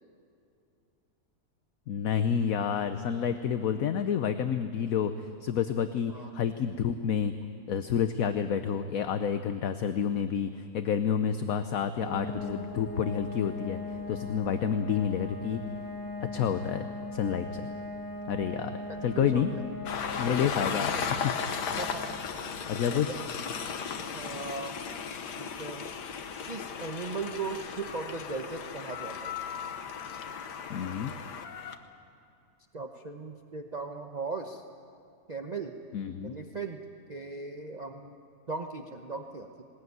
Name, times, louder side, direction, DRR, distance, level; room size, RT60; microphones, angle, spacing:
voice 1, 1.9-7.3 7.7-15.6 16.2-17.7 18.3-18.8 19.0-19.5 20.2-21.3 22.7-23.1 30.7-31.1 35.9-36.3, left 8 dB, 65° left, 9 dB, 1.1 m, -29 dB
sound 1, 12.0-26.6, left 2 dB, 10° left, 2.0 m, -40 dB
voice 2, 18.9-19.6 20.3-21.1 21.8-22.2 22.9-23.2 24.1-24.8 25.4-25.9 26.5-29.3 30.7-31.0 32.7-34.6 35.3-35.7 36.2-36.8 37.1-38.2 38.5-39.6, right 4 dB, 30° right, 4 dB, 0.9 m, -38 dB
Train, 19.9-31.8, left 6 dB, 85° left, 1.7 m, -36 dB
20.0 x 19.5 x 9.4 m, 2.6 s
omnidirectional pair, 1.7 m